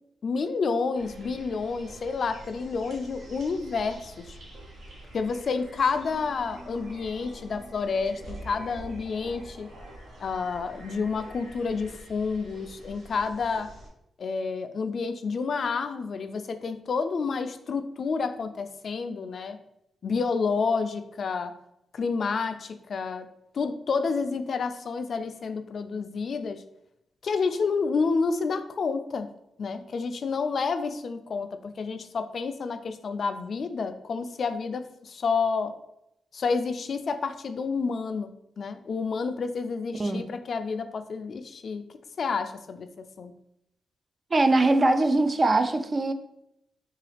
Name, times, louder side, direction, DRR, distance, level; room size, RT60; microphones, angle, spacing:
voice 1, 0.2-4.4 5.1-9.7 10.2-13.7 14.2-19.6 20.0-21.5 21.9-23.3 23.5-26.6 27.2-29.3 29.6-35.7 36.3-38.3 38.6-41.8 42.2-43.3, left 4 dB, 60° left, 0.3 m, -29 dB
sound 1, 0.9-13.9, right 1 dB, 75° right, 0.9 m, -46 dB
voice 2, 44.3-46.1, right 2 dB, 35° right, 0.3 m, -22 dB
3.8 x 2.3 x 3.2 m
cardioid pair, 80°, 0 cm